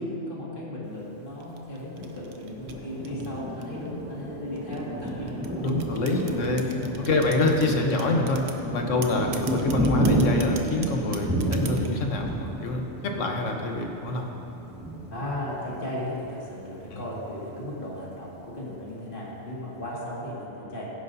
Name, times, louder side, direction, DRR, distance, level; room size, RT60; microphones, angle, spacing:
voice 1, 0.0-5.5 6.7-6.9 15.1-20.9, left 1 dB, 45° left, -6 dB, 2.3 m, -36 dB
sound 1, 1.4-3.9 4.5-7.7 8.0-8.6 9.0-12.0, right 7 dB, 65° right, 1.0 m, -41 dB
Thunder, 2.0-16.3 16.8-16.9 17.2-17.8, equal, 10° right, 1.7 m, -30 dB
voice 2, 5.5-6.7 7.0-8.4 8.7-14.2 16.9-17.0, left 2 dB, 90° left, 2 dB, 1.4 m, -26 dB
16.0 x 9.8 x 2.7 m, 2.8 s
omnidirectional pair, 1.2 m